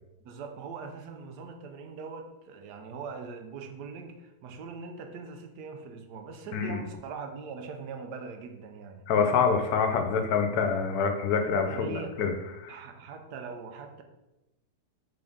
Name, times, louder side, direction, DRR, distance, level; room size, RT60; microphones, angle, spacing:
voice 1, 0.2-9.0 11.7-12.1 12.7-14.0, right 5 dB, 85° right, 5 dB, 1.2 m, -41 dB
voice 2, 6.5-6.8 9.1-12.7, left 5 dB, 75° left, 6 dB, 1.1 m, -26 dB
3.9 x 3.7 x 3.5 m, 0.99 s
omnidirectional pair, 1.7 m